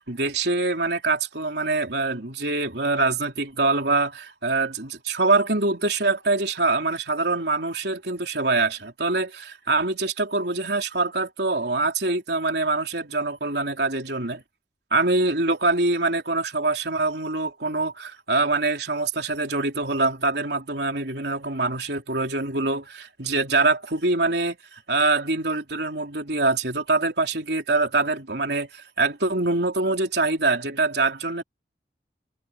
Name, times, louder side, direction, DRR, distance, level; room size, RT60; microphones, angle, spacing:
voice 1, 0.0-14.4 14.9-31.4, right 3 dB, 70° right, 3.4 m, -24 dB
head